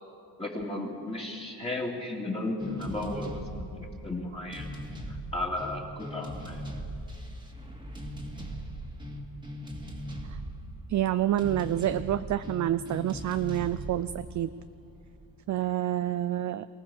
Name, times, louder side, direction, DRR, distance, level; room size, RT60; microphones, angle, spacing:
voice 1, 0.4-4.7 5.1-6.6, left 2 dB, 15° left, -2 dB, 2.7 m, -34 dB
sound 1, 2.6-15.3, equal, 10° right, 2.1 m, -40 dB
voice 2, 10.9-14.5 15.5-16.7, right 12 dB, 45° right, 13 dB, 0.4 m, -28 dB
23.5 x 17.5 x 7.1 m, 2.6 s
cardioid pair, 125°, 43 cm